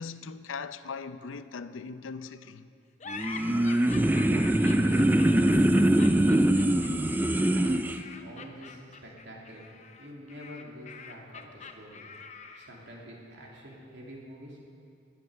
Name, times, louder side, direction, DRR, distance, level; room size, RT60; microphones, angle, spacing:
voice 1, 0.0-2.7, left 5 dB, 85° left, 0.6 m, -39 dB
sound 1, 3.0-12.8, left 5 dB, 35° left, 0.8 m, -45 dB
sound 2, 3.1-8.0, right 1 dB, 10° right, 0.4 m, -23 dB
voice 2, 3.4-3.8 4.1-5.6 6.0-6.5 7.5-9.6 10.0-12.0 12.5-14.6, equal, 60° right, 2.9 m, -46 dB
19.5 x 8.8 x 6.8 m
head